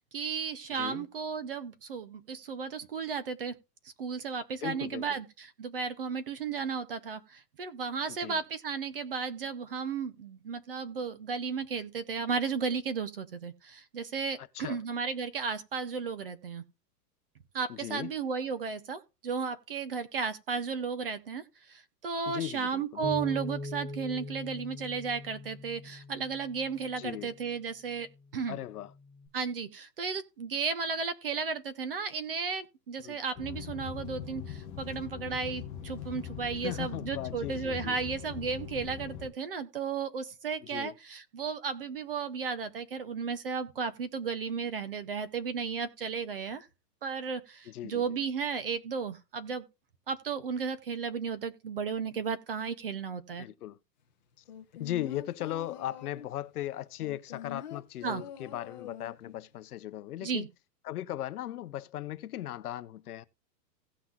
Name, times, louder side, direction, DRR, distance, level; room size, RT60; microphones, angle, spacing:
voice 1, 0.1-3.6 4.0-16.6 17.5-28.6 29.3-46.7 47.0-49.6 50.1-53.5 58.0-58.2 60.2-60.5, right 5 dB, 35° right, 0.6 m, -34 dB
voice 2, 4.6-5.2 8.2-8.4 14.4-14.8 17.7-18.1 22.3-23.1 27.0-27.3 28.5-28.9 33.0-33.2 36.6-38.0 40.6-41.0 47.7-48.0 53.4-53.8 54.8-60.4 60.8-63.2, left 13 dB, 65° left, 0.7 m, -38 dB
Bass guitar, 23.0-27.4 28.1-29.3, left 1 dB, 55° right, 3.0 m, -42 dB
sound 1, 33.3-39.3, left 9 dB, 10° left, 1.6 m, -41 dB
sound 2, 54.5-56.4 57.0-59.4 59.7-59.8, left 9 dB, 30° left, 0.6 m, -45 dB
17.0 x 5.8 x 2.3 m
supercardioid pair, 180°, 49 cm